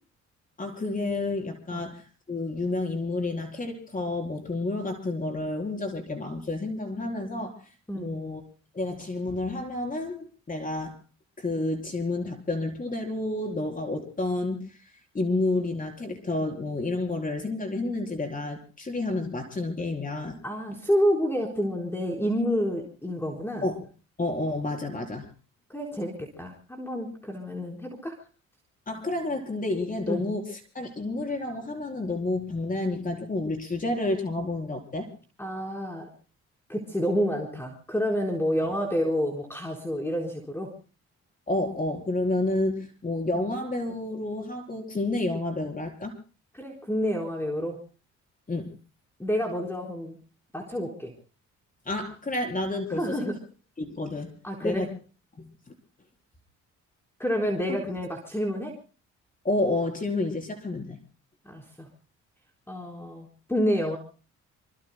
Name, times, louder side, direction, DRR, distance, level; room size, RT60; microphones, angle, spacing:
voice 1, 0.6-2.0 2.3-7.6 7.9-8.4 8.7-11.0 11.4-20.4 23.6-23.8 24.2-25.3 28.9-35.1 38.6-38.7 41.5-46.1 48.5-48.7 51.9-53.3 53.8-54.3 54.6-54.9 55.4-55.5 57.7-57.8 59.4-61.0, left 2 dB, 25° left, 2 dB, 4.2 m, -30 dB
voice 2, 20.4-23.6 25.7-28.1 30.1-30.2 35.4-36.1 36.7-40.7 46.5-47.8 49.2-50.2 50.5-51.1 53.0-53.3 54.4-54.9 57.2-58.8 61.5-61.9 62.7-64.0, equal, 10° left, 0 dB, 4.2 m, -29 dB
27.5 x 24.0 x 2.2 m, 0.36 s
cardioid pair, 90°, 30 cm